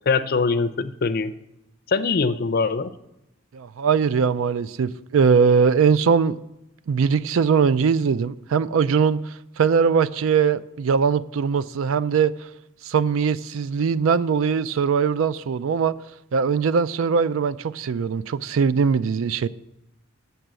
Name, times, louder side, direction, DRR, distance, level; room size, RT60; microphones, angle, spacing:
voice 1, 0.1-1.3 1.9-2.9, left 4 dB, 45° left, 0.4 m, -22 dB
voice 2, 3.5-6.4 6.9-12.5 12.8-16.0 16.3-19.5, right 6 dB, 70° right, 0.4 m, -21 dB
8.1 x 6.8 x 7.5 m
head